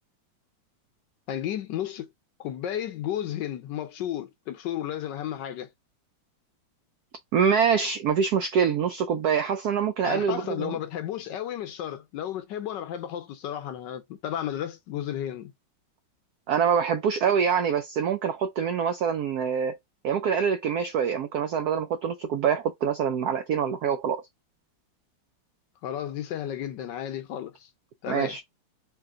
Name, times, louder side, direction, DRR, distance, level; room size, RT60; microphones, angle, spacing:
voice 1, 1.3-2.1 2.4-5.7 10.0-15.5 25.8-27.7 28.0-28.4, left 11 dB, 70° left, 1.2 m, -33 dB
voice 2, 7.3-10.8 16.5-19.8 20.0-24.2 28.1-28.4, right 7 dB, 85° right, 0.8 m, -25 dB
3.3 x 3.0 x 3.6 m
omnidirectional pair, 2.2 m